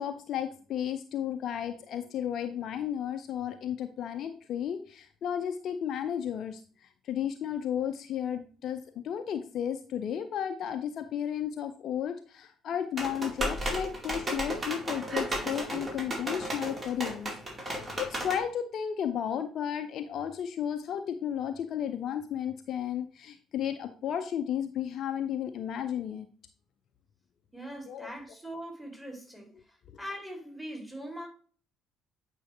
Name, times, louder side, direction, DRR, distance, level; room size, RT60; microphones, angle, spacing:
voice 1, 0.0-26.3 27.9-28.1, left 9 dB, 50° left, 0.5 m, -33 dB
sound 1, 13.0-18.4, right 1 dB, 25° right, 2.3 m, -34 dB
voice 2, 27.5-29.5 30.0-31.3, equal, ahead, 2.7 m, -41 dB
8.8 x 4.8 x 3.2 m
figure-of-eight pair, 50°, 0 cm